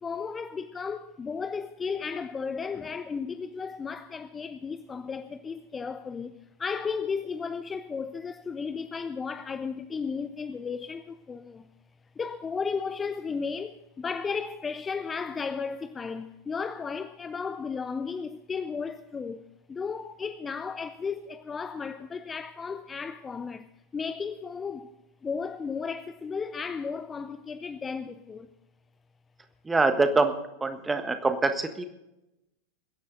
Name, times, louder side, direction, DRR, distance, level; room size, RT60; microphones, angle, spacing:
voice 1, 0.0-11.7 12.2-19.4 19.7-23.7 23.9-24.9 25.2-28.5, left 5 dB, 15° left, 0.6 m, -34 dB
voice 2, 29.6-30.3 30.6-31.8, right 3 dB, 10° right, 1.5 m, -24 dB
23.0 x 10.5 x 3.8 m
figure-of-eight pair, 90°, 0 cm